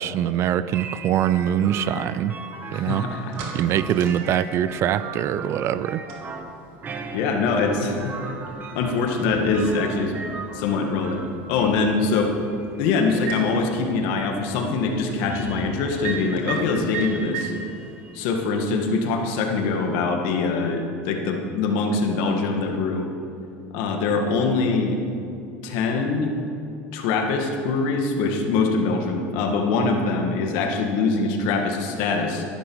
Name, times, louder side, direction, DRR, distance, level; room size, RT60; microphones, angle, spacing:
voice 1, 0.0-2.4 2.7-3.1 3.5-6.0, right 10 dB, 45° right, 15 dB, 0.5 m, -23 dB
sound 1, 0.7-19.4, right 4 dB, 30° right, 1.2 m, -39 dB
sound 2, 2.6-18.9, right 5 dB, 70° right, 2.6 m, -40 dB
voice 2, 2.7-3.2 7.1-8.3 8.7-10.1 10.5-11.2 11.5-12.3 12.8-17.5 18.1-23.1 23.7-25.0 25.6-26.3 26.9-32.4, left 4 dB, 70° left, 3 dB, 1.8 m, -23 dB
14.0 x 11.5 x 4.8 m, 2.6 s
supercardioid pair, 130°, 6 cm